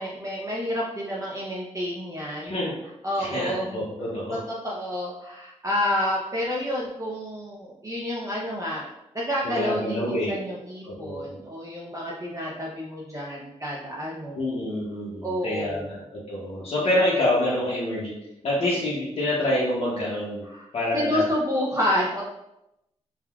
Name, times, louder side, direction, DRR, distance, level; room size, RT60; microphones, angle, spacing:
voice 1, 0.0-2.5 3.0-3.8 4.3-4.4 4.6-8.9 9.1-14.5 15.2-15.9 20.5-20.6 20.9-22.2, left 1 dB, 25° right, -4 dB, 0.6 m, -29 dB
voice 2, 2.4-2.7 3.2-4.4 9.4-10.3 10.8-11.4 14.4-18.1 18.4-20.4 20.7-21.3, left 1 dB, 60° left, -6 dB, 0.7 m, -27 dB
3.4 x 2.2 x 2.3 m, 0.87 s
cardioid pair, 70°, 12 cm